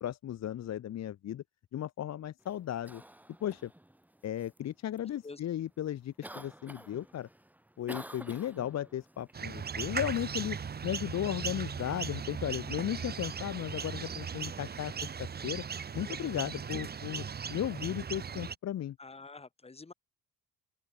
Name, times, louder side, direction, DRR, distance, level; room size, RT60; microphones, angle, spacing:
voice 1, 0.0-1.4 1.7-3.0 3.4-3.7 4.2-7.3 7.8-10.6 10.8-15.6 15.9-19.0, left 11 dB, 50° left, 1.1 m, -35 dB
Cough, 2.4-16.9, right 1 dB, 5° right, 7.2 m, -54 dB
sound 1, 9.3-18.6, right 6 dB, 30° right, 1.1 m, -38 dB
voice 2, 19.0-19.9, left 3 dB, 15° left, 2.7 m, -47 dB
open air
cardioid pair, 110°, 34 cm